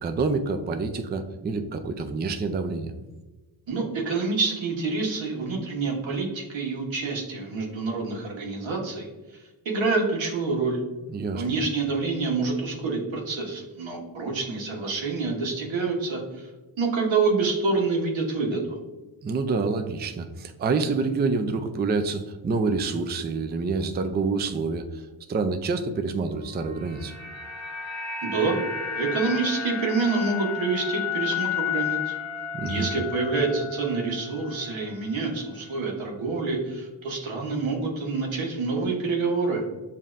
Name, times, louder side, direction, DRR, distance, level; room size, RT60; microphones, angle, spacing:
voice 1, 0.0-2.9 11.1-11.4 19.2-25.0 25.3-27.1 32.5-32.9, right 4 dB, 25° right, 8 dB, 0.3 m, -27 dB
voice 2, 3.7-10.8 11.3-16.5 16.8-18.8 28.2-28.6 29.0-32.1 32.6-39.6, right 4 dB, 90° right, 0 dB, 1.2 m, -27 dB
sound 1, 26.6-34.9 35.1-35.3, left 7 dB, 40° left, 0.6 m, -32 dB
7.0 x 2.8 x 2.5 m, 1.2 s
wide cardioid pair, 90°, 45 cm